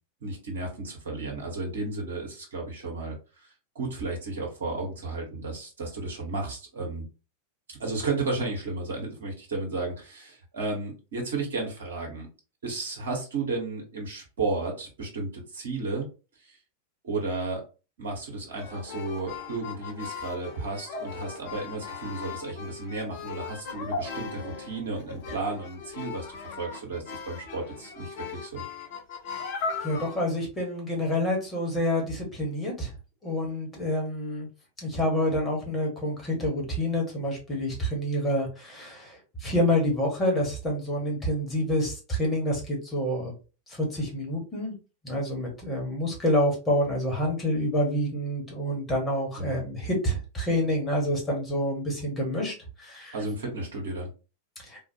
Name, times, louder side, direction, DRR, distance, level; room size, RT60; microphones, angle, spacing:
voice 1, 0.2-7.1 7.8-12.3 12.6-16.1 16.4-16.6 17.0-17.6 18.0-28.6 49.4-49.6 53.1-54.1, right 3 dB, 60° right, 1 dB, 1.1 m, -33 dB
sound 1, 18.5-30.2, left 5 dB, 50° left, 0.7 m, -38 dB
voice 2, 29.8-32.9 33.2-34.5 34.8-43.3 43.7-44.7 45.0-53.1 54.7-54.8, left 1 dB, 15° left, 0 dB, 1.6 m, -28 dB
3.7 x 2.4 x 2.8 m, 0.32 s
figure-of-eight pair, 90°, 0 cm